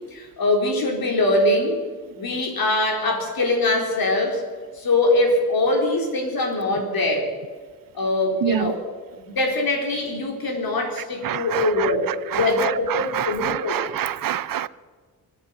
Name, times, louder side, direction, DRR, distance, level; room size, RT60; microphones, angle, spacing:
voice 1, 0.1-1.8 2.2-4.4 4.7-7.3 7.9-8.8 9.3-12.1 12.3-13.8, left 2 dB, 70° left, 1 dB, 4.2 m, -22 dB
voice 2, 8.4-8.7 11.2-11.9 12.3-14.7, right 10 dB, 65° right, 18 dB, 0.7 m, -26 dB
25.5 x 8.4 x 6.5 m, 1.5 s
cardioid pair, 70°, 37 cm